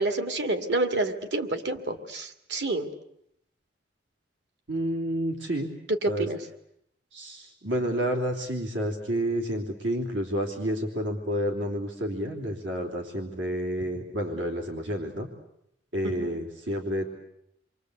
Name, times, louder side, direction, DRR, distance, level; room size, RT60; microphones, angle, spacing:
voice 1, 0.0-2.9 6.0-6.4 16.0-16.3, right 2 dB, 70° right, 7 dB, 2.3 m, -28 dB
voice 2, 4.7-5.7 6.1-6.3 7.1-15.3 15.9-17.1, equal, 90° right, 1 dB, 3.4 m, -30 dB
29.5 x 23.5 x 8.1 m, 0.75 s
head